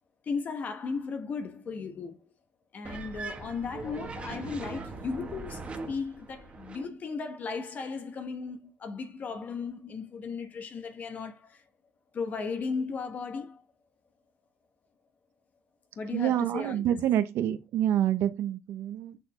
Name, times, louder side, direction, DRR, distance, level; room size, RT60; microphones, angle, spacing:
voice 1, 0.3-2.3 2.7-5.6 5.9-11.6 12.1-13.6 16.0-16.9, left 5 dB, 40° left, 1.1 m, -36 dB
sound 1, 2.8-6.9, right 3 dB, 30° right, 1.4 m, -40 dB
voice 2, 16.1-19.2, right 11 dB, 75° right, 1.0 m, -27 dB
6.7 x 6.5 x 3.4 m
cardioid pair, 150°, 4 cm